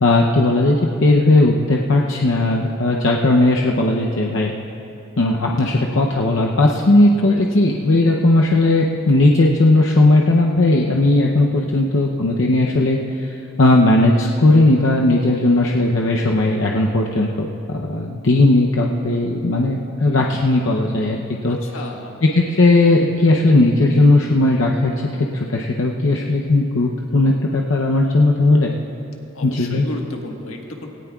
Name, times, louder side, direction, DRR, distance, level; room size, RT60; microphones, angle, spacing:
voice 1, 0.0-4.5 5.2-21.6 22.3-28.7 29.4-29.9, left 2 dB, 65° left, -1 dB, 0.7 m, -17 dB
voice 2, 11.6-11.9 21.5-22.2 29.3-30.9, left 2 dB, 85° left, 1 dB, 1.5 m, -34 dB
17.5 x 17.5 x 2.4 m, 2.7 s
head